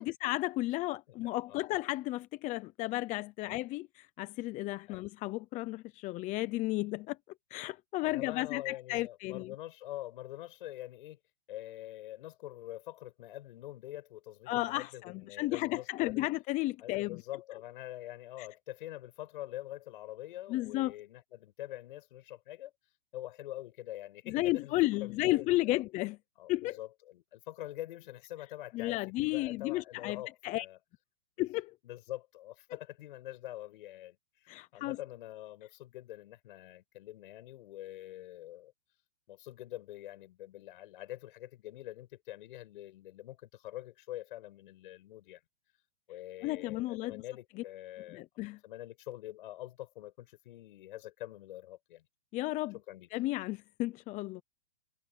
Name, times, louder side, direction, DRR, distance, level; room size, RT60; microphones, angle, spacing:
voice 1, 0.0-7.2 7.5-9.5 14.5-17.2 18.4-18.5 20.5-20.9 24.3-26.2 26.5-26.8 28.7-30.7 31.4-31.7 34.5-35.0 46.4-47.2 48.1-48.6 52.3-52.7 53.1-54.4, left 18 dB, 25° left, 0.8 m, -33 dB
voice 2, 8.0-11.2 11.5-16.3 16.8-22.7 23.1-24.7 25.0-25.8 26.4-30.8 31.4-31.5 31.8-34.2 34.4-38.7 39.3-45.4 46.1-48.3 48.6-52.1 52.7-53.1, left 14 dB, 60° left, 6.4 m, -45 dB
hypercardioid pair, 140°, 29 cm